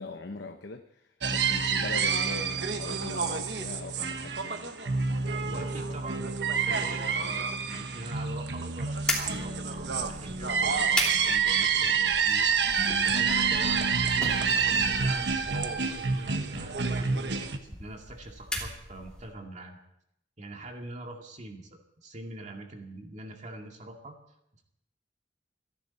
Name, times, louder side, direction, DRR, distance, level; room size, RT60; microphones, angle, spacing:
voice 1, 0.0-6.0, left 3 dB, 80° left, 6 dB, 0.9 m, -41 dB
sound 1, 1.2-17.6, right 5 dB, 70° right, 1.3 m, -28 dB
voice 2, 5.4-19.8 20.4-21.7 22.0-24.1, right 2 dB, 45° right, 2 dB, 2.2 m, -43 dB
sound 2, 9.0-19.4, left 1 dB, 5° left, 3.1 m, -38 dB
27.5 x 11.0 x 4.3 m, 0.78 s
head